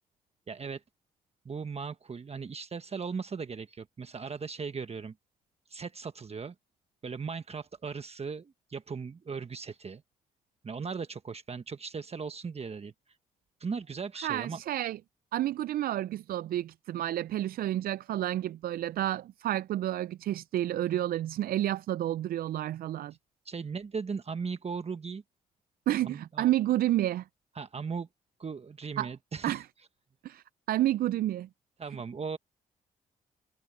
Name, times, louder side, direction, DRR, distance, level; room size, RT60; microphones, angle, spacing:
voice 1, 0.5-0.8 1.4-5.1 5.7-6.5 7.0-10.0 10.6-12.9 13.6-14.6 23.4-25.2 26.0-26.5 27.5-28.1 28.4-29.6 31.8-32.4, right 5 dB, 40° right, 1.2 m, -38 dB
voice 2, 14.2-15.0 15.3-23.1 25.9-27.2 29.0-29.1 29.4-29.7 30.2-31.5, right 13 dB, 65° right, 0.4 m, -30 dB
supercardioid pair, 50°, 17 cm